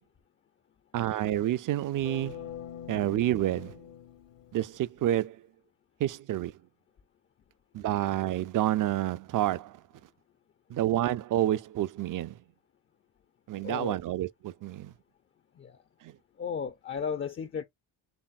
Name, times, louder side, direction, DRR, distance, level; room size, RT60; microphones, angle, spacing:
voice 1, 0.9-2.5 2.9-3.8 4.5-5.4 6.0-6.5 7.7-9.8 10.7-12.4 13.5-14.9, right 13 dB, 45° right, 0.5 m, -29 dB
sound 1, 2.0-5.1, left 9 dB, 75° left, 1.0 m, -44 dB
voice 2, 13.6-14.0 15.6-15.8 16.4-17.6, left 6 dB, 30° left, 0.4 m, -34 dB
4.2 x 3.5 x 2.4 m
supercardioid pair, 65°, 46 cm